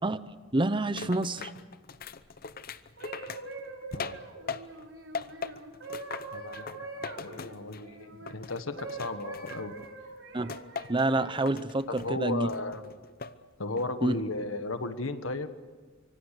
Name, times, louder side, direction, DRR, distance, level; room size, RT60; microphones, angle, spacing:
voice 1, 0.5-1.5 10.3-10.5 10.9-12.5 14.0-14.2, right 2 dB, 25° right, 13 dB, 0.8 m, -27 dB
sound 1, 1.0-4.9 5.1-7.9 8.3-9.9 10.5-11.1 11.5-12.1 12.5-13.4 13.8-14.2, left 5 dB, 50° left, 0.8 m, -40 dB
sound 2, 2.8-8.3 8.8-11.6 12.3-12.6, right 3 dB, 85° right, 4.3 m, -44 dB
voice 2, 6.3-9.7 11.9-12.8 13.6-15.5, left 2 dB, 90° left, 10 dB, 1.5 m, -35 dB
25.0 x 24.0 x 6.7 m, 1.5 s
head